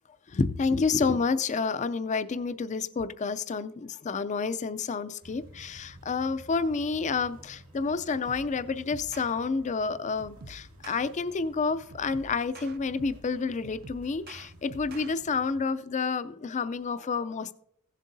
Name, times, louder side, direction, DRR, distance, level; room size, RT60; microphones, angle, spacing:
voice 1, 0.3-17.5, left 4 dB, 35° left, 0.4 m, -29 dB
sound 1, 5.2-15.6, right 1 dB, 70° right, 1.9 m, -52 dB
sound 2, 8.3-8.6 8.9-9.3 10.2-11.1 11.9-13.3 13.6-15.1, right 3 dB, 45° right, 0.5 m, -47 dB
16.5 x 7.4 x 2.7 m
head